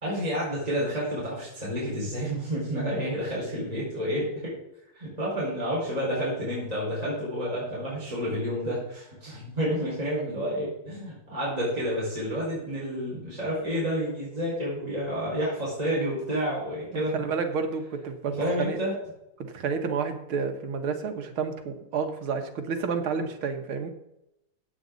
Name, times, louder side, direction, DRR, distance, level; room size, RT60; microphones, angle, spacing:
voice 1, 0.0-4.5 4.9-17.2 18.3-18.9, equal, 15° right, -7 dB, 4.9 m, -30 dB
voice 2, 16.9-18.8 19.5-23.9, right 5 dB, 80° right, 6 dB, 2.1 m, -30 dB
15.5 x 8.6 x 4.0 m, 0.86 s
omnidirectional pair, 2.3 m